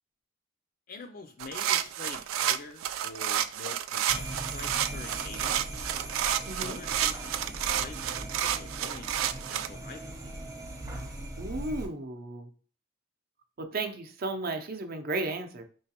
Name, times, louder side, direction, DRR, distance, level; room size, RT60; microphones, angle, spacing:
voice 1, 0.9-5.6 6.5-10.3, left 4 dB, 45° left, 6 dB, 0.4 m, -46 dB
sound 1, 1.4-9.7, right 11 dB, 90° right, 0.3 m, -30 dB
sound 2, 4.1-11.9, right 1 dB, 15° right, 0.8 m, -40 dB
voice 2, 6.5-6.8 11.4-12.5 13.6-15.6, right 2 dB, 50° right, 6 dB, 0.6 m, -34 dB
4.6 x 3.1 x 2.9 m, 0.41 s
head